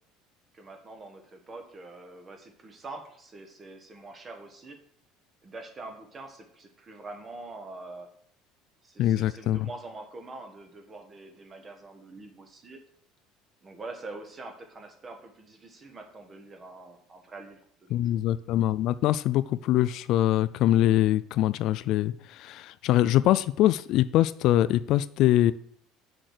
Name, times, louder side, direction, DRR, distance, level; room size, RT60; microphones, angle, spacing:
voice 1, 0.5-4.8 5.4-8.1 8.8-12.8 13.6-18.2, right 2 dB, 25° right, 5 dB, 1.5 m, -44 dB
voice 2, 9.0-9.7 17.9-25.5, left 13 dB, 55° left, 14 dB, 0.3 m, -23 dB
6.3 x 6.0 x 6.7 m, 0.63 s
cardioid pair, 140°, 0 cm